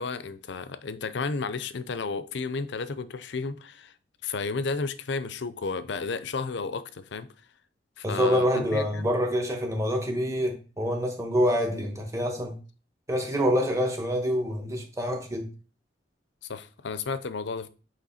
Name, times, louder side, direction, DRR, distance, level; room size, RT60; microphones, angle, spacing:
voice 1, 0.0-3.9 4.2-7.3 8.0-9.1 16.5-17.7, left 4 dB, 70° left, 0.5 m, -32 dB
voice 2, 8.0-12.6 13.1-15.5, equal, 15° right, 1.3 m, -26 dB
8.1 x 3.2 x 4.2 m
head